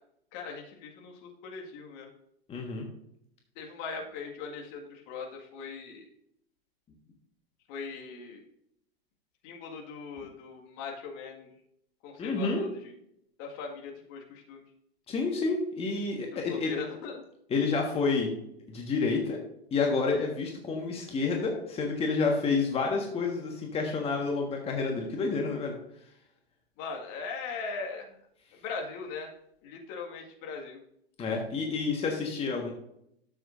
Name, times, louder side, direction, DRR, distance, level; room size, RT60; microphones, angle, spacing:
voice 1, 0.3-2.1 3.6-6.1 7.7-8.4 9.4-11.5 12.0-12.9 13.4-14.6 16.5-17.2 26.8-28.2 28.5-29.3 29.6-30.8, left 5 dB, 40° left, 1 dB, 1.9 m, -40 dB
voice 2, 2.5-2.9 12.2-12.6 15.1-16.7 17.5-18.3 18.7-19.4 19.7-25.8 31.2-32.7, left 4 dB, 20° left, 1 dB, 1.5 m, -29 dB
12.0 x 7.9 x 2.6 m, 0.75 s
figure-of-eight pair, 100°, 32 cm